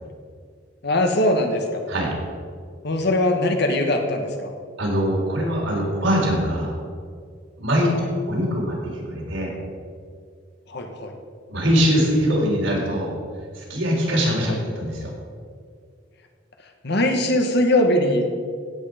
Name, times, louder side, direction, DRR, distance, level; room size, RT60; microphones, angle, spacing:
voice 1, 0.8-1.8 2.8-4.5 7.9-8.1 10.7-11.1 14.5-14.6 16.8-18.2, left 1 dB, 60° left, 4 dB, 1.5 m, -21 dB
voice 2, 4.8-6.8 7.6-9.5 11.5-13.1 13.5-15.1, equal, 85° right, -3 dB, 3.9 m, -22 dB
16.0 x 8.2 x 5.1 m, 2.2 s
head